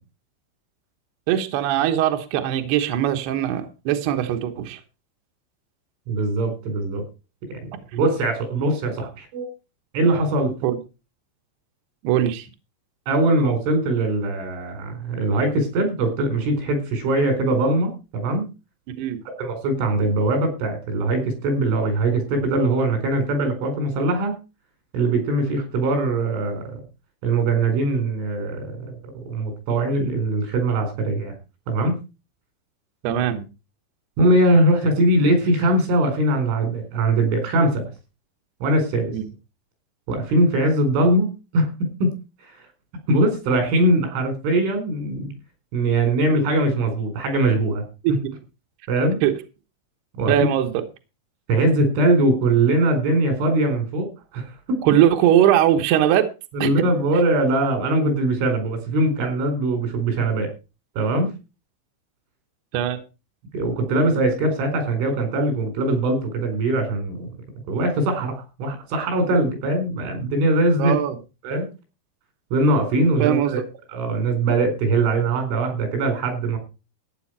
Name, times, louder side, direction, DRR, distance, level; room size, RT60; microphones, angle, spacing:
voice 1, 1.3-4.8 10.6-10.8 12.0-12.5 19.0-19.2 33.0-33.5 39.1-39.2 48.0-48.1 49.2-49.4 50.3-50.8 54.8-56.3 56.6-56.8 62.7-63.0 70.8-71.2 73.2-73.6, right 11 dB, 70° right, 5 dB, 3.0 m, -20 dB
voice 2, 6.1-7.0 7.9-9.5 9.9-10.5 13.1-18.5 19.4-24.3 24.9-26.6 27.2-31.3 31.7-32.0 34.2-37.9 38.6-39.1 40.1-42.2 43.1-45.3 45.7-47.9 48.9-49.2 50.2-50.5 51.5-54.1 54.3-54.8 56.5-60.5 61.0-61.3 63.5-67.3 67.7-70.9 71.4-71.7 72.5-73.6 73.9-76.6, right 2 dB, 85° right, 6 dB, 6.9 m, -21 dB
15.0 x 9.5 x 4.6 m, 0.30 s
omnidirectional pair, 5.4 m